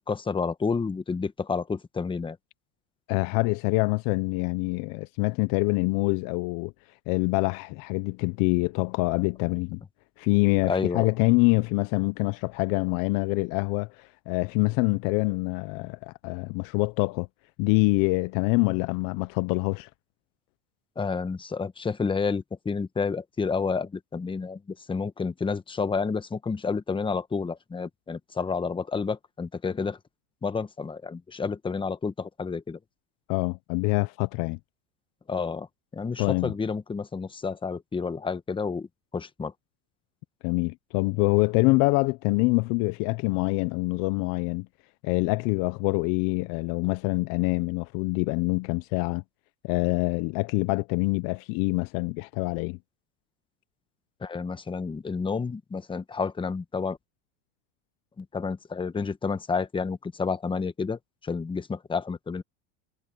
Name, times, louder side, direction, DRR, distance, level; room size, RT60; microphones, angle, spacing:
voice 1, 0.0-2.4 10.7-11.1 21.0-30.0 30.4-32.8 35.3-35.7 35.9-38.9 39.1-39.5 54.2-57.0 58.2-62.4, left 5 dB, 10° left, 1.2 m, -30 dB
voice 2, 3.1-6.7 7.1-9.8 10.2-17.3 17.6-19.9 33.3-34.6 36.2-36.5 40.4-44.7 45.0-49.2 49.6-52.8, left 25 dB, 55° left, 0.8 m, -25 dB
supercardioid pair, 130°, 41 cm